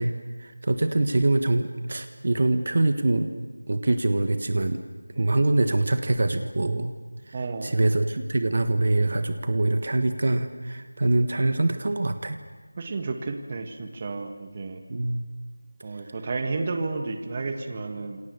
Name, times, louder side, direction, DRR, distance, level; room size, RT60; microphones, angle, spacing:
voice 1, 0.0-3.3 3.7-4.8 5.2-6.9 7.3-12.4 14.9-15.2, right 2 dB, 50° right, 8 dB, 1.5 m, -24 dB
voice 2, 7.3-7.7 12.8-14.8 15.8-18.2, right 3 dB, 25° right, 6 dB, 1.8 m, -31 dB
29.5 x 28.0 x 7.1 m, 1.4 s
figure-of-eight pair, 175°, 0 cm